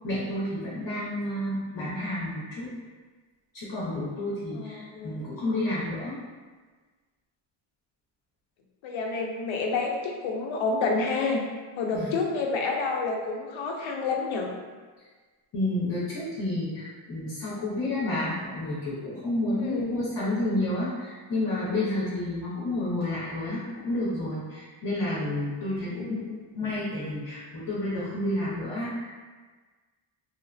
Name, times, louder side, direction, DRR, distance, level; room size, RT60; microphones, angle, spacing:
voice 1, 0.0-2.7 3.5-6.2 11.9-12.1 15.5-26.3 26.5-29.1, left 1 dB, 45° left, -8 dB, 0.8 m, -30 dB
voice 2, 4.5-5.2 8.8-11.4 11.8-14.5 19.5-20.0 25.8-26.4, left 4 dB, 75° left, 1 dB, 0.6 m, -29 dB
3.1 x 2.1 x 2.4 m, 1.4 s
wide cardioid pair, 150°, 49 cm